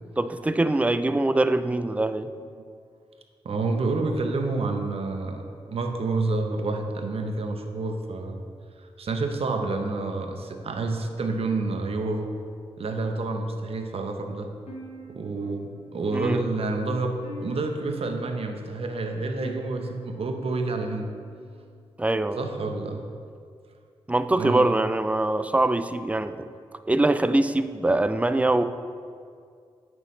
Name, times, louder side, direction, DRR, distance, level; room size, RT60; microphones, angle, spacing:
voice 1, 0.2-2.3 16.1-16.4 22.0-22.4 24.1-26.5 26.9-28.6, right 2 dB, 10° right, 11 dB, 0.4 m, -23 dB
voice 2, 3.4-8.4 8.8-12.3 12.8-14.5 15.1-21.1 22.4-23.1 24.4-24.7, right 3 dB, 65° right, 5 dB, 0.8 m, -29 dB
sound 1, 14.7-21.8, equal, 80° left, 1.5 m, -47 dB
8.8 x 6.2 x 3.2 m, 2.2 s
cardioid pair, 45°, 11 cm